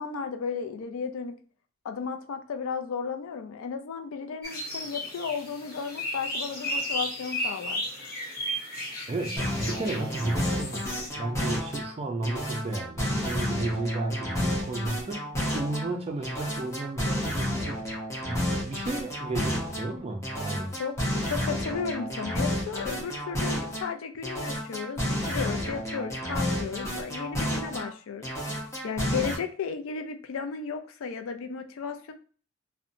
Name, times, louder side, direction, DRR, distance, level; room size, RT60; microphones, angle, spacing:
voice 1, 0.0-1.4 1.8-7.8 20.8-28.3 28.8-32.1, left 6 dB, 75° left, 0.4 m, -34 dB
sound 1, 4.4-11.1, equal, 50° left, 0.8 m, -34 dB
voice 2, 9.1-10.9 11.2-15.3 15.5-20.8, right 2 dB, 30° right, 0.4 m, -33 dB
sound 2, 9.4-11.9 12.2-15.9 16.2-19.9 20.2-23.9 24.2-27.9 28.2-29.3, equal, 15° left, 0.7 m, -31 dB
2.7 x 2.1 x 2.5 m
head